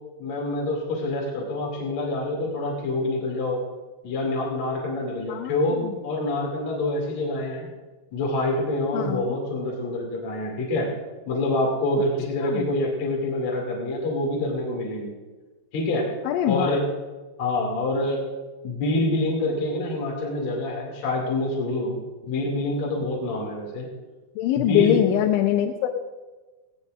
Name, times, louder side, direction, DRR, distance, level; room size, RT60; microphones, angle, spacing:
voice 1, 0.2-3.6 4.0-7.7 8.1-10.9 11.3-15.1 15.7-16.1 16.5-16.9 17.4-18.2 18.6-22.0 22.3-23.9 24.6-25.1, left 2 dB, 45° left, -2 dB, 3.2 m, -26 dB
voice 2, 5.3-5.9 8.9-9.4 12.4-12.7 16.3-16.7 24.4-25.9, left 11 dB, 90° left, 2 dB, 3.2 m, -23 dB
18.5 x 17.5 x 2.6 m, 1.2 s
omnidirectional pair, 5.4 m